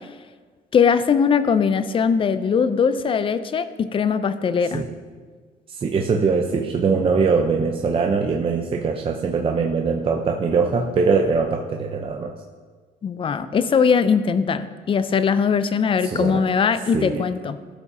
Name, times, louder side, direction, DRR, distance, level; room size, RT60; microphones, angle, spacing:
voice 1, 0.7-4.8 13.0-17.6, left 6 dB, 30° left, 13 dB, 0.4 m, -20 dB
voice 2, 5.7-12.3 16.0-16.4 16.9-17.3, right 4 dB, 35° right, 2 dB, 0.6 m, -22 dB
13.0 x 5.9 x 2.7 m, 1.5 s
cardioid pair, 110°, 17 cm